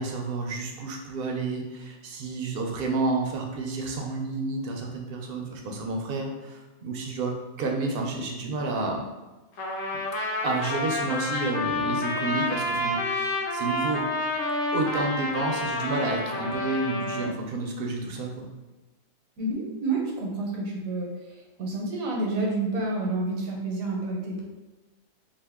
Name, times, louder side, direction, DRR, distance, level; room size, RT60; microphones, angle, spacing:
voice 1, 0.0-9.1 10.4-14.0 14.7-18.4, right 3 dB, 60° right, 1 dB, 0.6 m, -30 dB
Trumpet, 9.6-17.3, left 2 dB, 70° left, 0.9 m, -29 dB
voice 2, 19.4-21.1 21.6-24.4, right 2 dB, 85° right, -1 dB, 1.2 m, -29 dB
2.7 x 2.5 x 3.5 m, 1.1 s
omnidirectional pair, 1.4 m